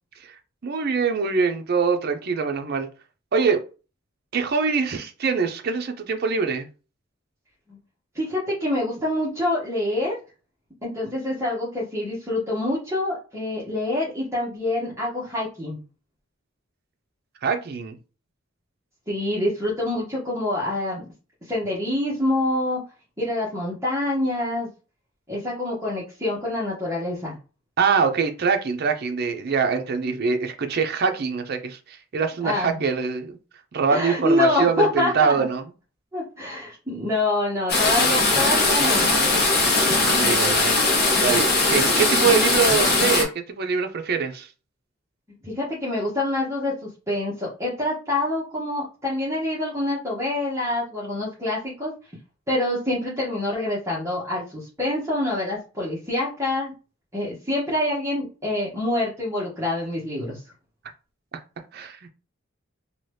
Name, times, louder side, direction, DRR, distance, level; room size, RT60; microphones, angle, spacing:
voice 1, 0.2-2.9 3.3-3.6 4.3-6.7 17.4-17.9 27.8-33.4 33.7-35.7 40.0-40.8 41.2-44.5 61.3-61.4 61.7-62.1, right 5 dB, 50° right, 0.5 m, -24 dB
voice 2, 8.1-10.1 10.8-15.8 19.1-21.0 21.5-22.8 23.2-24.7 25.3-27.4 30.0-30.1 32.4-32.8 33.9-35.3 36.1-39.0 45.4-51.9 52.5-56.7 57.1-60.4, left 1 dB, 15° right, 0.9 m, -26 dB
sound 1, 37.7-43.2, left 2 dB, 50° left, 0.8 m, -20 dB
2.8 x 2.2 x 3.2 m
head